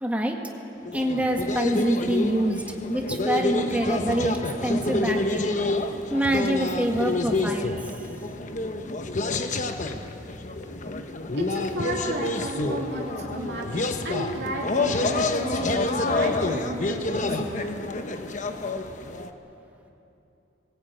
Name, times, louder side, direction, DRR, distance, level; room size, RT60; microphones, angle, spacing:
voice 1, 0.0-0.4 0.9-2.6 2.9-4.4 4.6-5.5 6.1-7.9, right 1 dB, 10° right, 1 dB, 1.7 m, -25 dB
sound 1, 0.8-19.3, left 2 dB, 45° left, 1.0 m, -28 dB
voice 2, 11.3-17.8, right 1 dB, 65° right, -3 dB, 2.7 m, -33 dB
19.5 x 17.0 x 9.0 m, 2.9 s
head